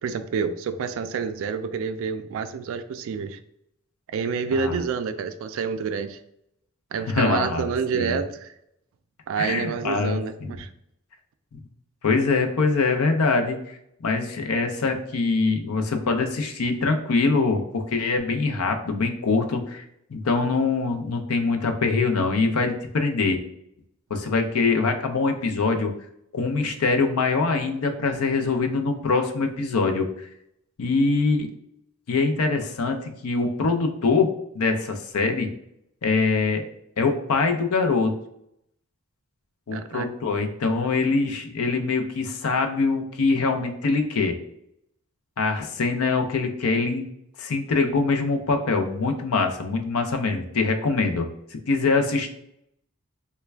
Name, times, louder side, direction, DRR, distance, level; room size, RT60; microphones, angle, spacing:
voice 1, 0.0-3.4 4.1-6.2 6.9-8.5 9.3-10.7 39.7-40.1, right 5 dB, 60° right, 9 dB, 0.3 m, -28 dB
voice 2, 7.1-7.6 7.9-8.2 9.4-10.6 12.0-19.8 20.1-23.4 24.1-25.9 26.3-30.3 30.8-31.5 32.1-35.5 36.0-36.6 37.0-38.1 39.7-44.4 45.4-47.0 47.4-52.3, left 4 dB, 75° left, 5 dB, 0.5 m, -23 dB
3.3 x 2.2 x 3.3 m, 0.75 s
head